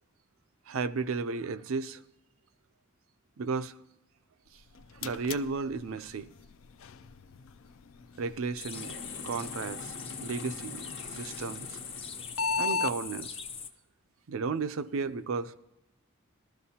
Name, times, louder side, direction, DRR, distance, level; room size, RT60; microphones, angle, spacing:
voice 1, 0.7-2.0 3.4-3.8 5.0-6.3 8.2-8.9 9.2-11.8 12.6-13.4 14.3-15.6, right 4 dB, 85° right, 0.5 m, -34 dB
sound 1, 4.5-13.0, left 4 dB, 80° left, 0.4 m, -39 dB
sound 2, 8.6-13.7, left 6 dB, 30° left, 0.5 m, -42 dB
sound 3, 8.7-12.7, left 3 dB, 55° left, 0.9 m, -46 dB
19.0 x 13.0 x 2.8 m
head